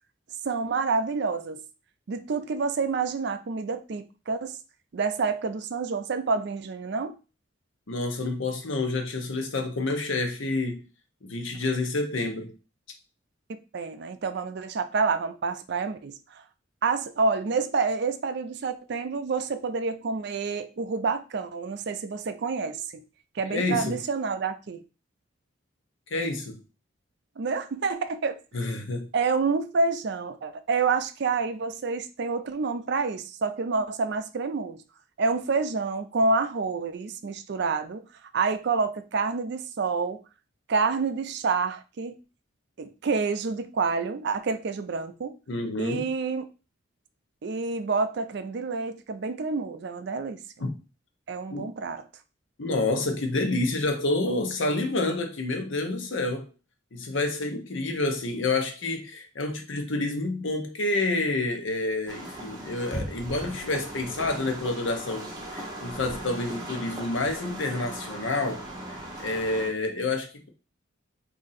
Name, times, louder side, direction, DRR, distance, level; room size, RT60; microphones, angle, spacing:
voice 1, 0.4-1.6 2.1-4.6 4.9-7.2 13.5-16.4 16.8-23.0 23.4-24.8 27.4-28.4 29.1-34.8 35.2-38.0 38.3-40.2 40.7-42.2 42.8-45.4 45.8-46.5 47.4-50.4 51.3-52.0, right 4 dB, 55° right, 0.4 m, -28 dB
voice 2, 7.9-10.8 11.2-12.5 23.5-24.0 26.1-26.6 28.5-29.1 45.5-46.1 50.6-50.7 51.5-51.7 52.6-56.5 56.9-70.5, left 2 dB, 70° left, 0.8 m, -28 dB
sound 1, 62.1-69.7, right 1 dB, 20° right, 1.1 m, -38 dB
3.7 x 2.7 x 4.1 m
head